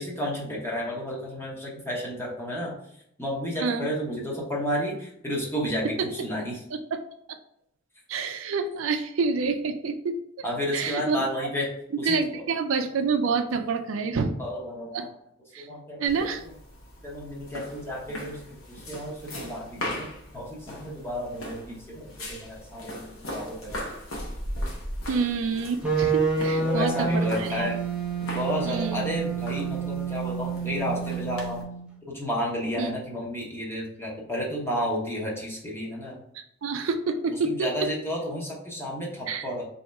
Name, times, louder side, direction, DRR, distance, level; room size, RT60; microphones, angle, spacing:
voice 1, 0.0-2.7 3.2-5.9 6.1-6.6 10.4-11.7 12.0-12.4 14.4-15.1 15.6-16.0 17.0-20.1 20.3-23.8 26.6-27.8 28.3-31.6 32.1-36.2 37.4-39.6, equal, 10° left, -3 dB, 1.0 m, -32 dB
voice 2, 8.1-10.2 10.7-11.5 12.0-14.3 14.9-15.1 15.5-15.7 16.0-16.4 25.1-27.7 28.6-29.1 32.8-33.0 36.3-37.7 39.3-39.5, right 4 dB, 70° right, 7 dB, 0.4 m, -28 dB
sound 1, 16.1-31.6, left 1 dB, 75° left, 1.0 m, -39 dB
sound 2, 25.8-31.9, right 4 dB, 5° right, 0.6 m, -28 dB
4.2 x 2.8 x 3.4 m, 0.74 s
head